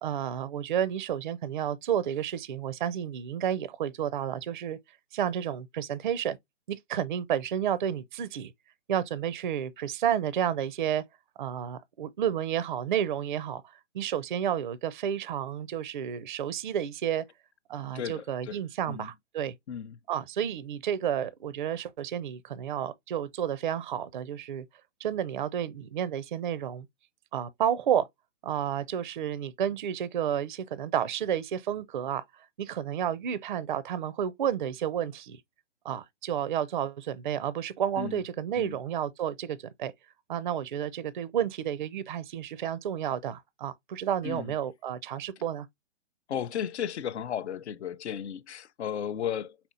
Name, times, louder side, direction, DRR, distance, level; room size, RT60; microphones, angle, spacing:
voice 1, 0.0-4.8 5.1-6.4 6.7-8.5 8.9-11.0 11.4-13.6 13.9-17.2 17.7-19.5 20.1-24.6 25.0-26.9 27.3-28.1 28.4-32.2 32.6-35.4 35.8-39.9 40.3-45.7, right 9 dB, 45° right, 0.4 m, -31 dB
voice 2, 17.9-18.6 18.9-19.1 19.7-20.0 38.0-38.2 38.5-38.8 44.2-44.5 46.3-49.7, left 9 dB, 65° left, 0.6 m, -34 dB
4.3 x 4.2 x 2.5 m
hypercardioid pair, 155°, 36 cm